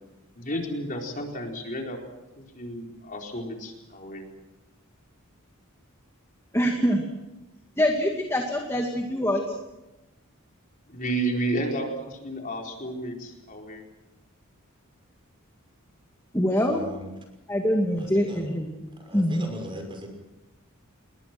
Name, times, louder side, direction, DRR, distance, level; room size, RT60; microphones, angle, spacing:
voice 1, 0.4-2.0 2.4-4.3 10.9-13.8, right 1 dB, 40° left, 1 dB, 4.4 m, -32 dB
voice 2, 6.5-7.0 7.8-9.4 16.3-16.8 17.5-18.7 19.1-19.5, equal, 15° left, 1 dB, 2.3 m, -24 dB
voice 3, 16.4-17.1 18.0-18.5 19.1-20.1, equal, 25° right, 3 dB, 5.9 m, -40 dB
30.0 x 21.5 x 6.1 m, 1.0 s
head